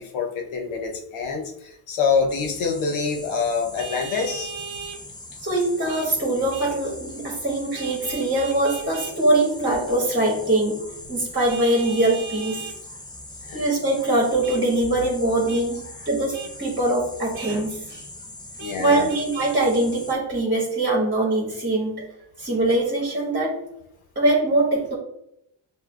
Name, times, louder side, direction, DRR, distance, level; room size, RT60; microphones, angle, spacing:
voice 1, 0.0-4.6 13.4-13.6 18.6-19.1, left 5 dB, 75° left, 3 dB, 0.9 m, -26 dB
sound 1, 2.3-20.2, left 2 dB, 10° left, 0.5 m, -41 dB
Vehicle horn car horn honking, 3.8-5.0 5.9-6.1 6.5-6.8 7.8-9.2 11.5-12.8 14.4-14.6 15.5-15.6 16.3-16.5 17.3-17.6 18.6-19.5, right 6 dB, 65° right, 0.7 m, -37 dB
voice 2, 5.4-10.8 11.1-12.6 13.5-18.1 18.8-22.1 22.4-23.6 24.1-24.9, right 1 dB, 25° right, -3 dB, 1.3 m, -22 dB
6.6 x 2.3 x 2.3 m, 0.79 s
cardioid pair, 75°, 49 cm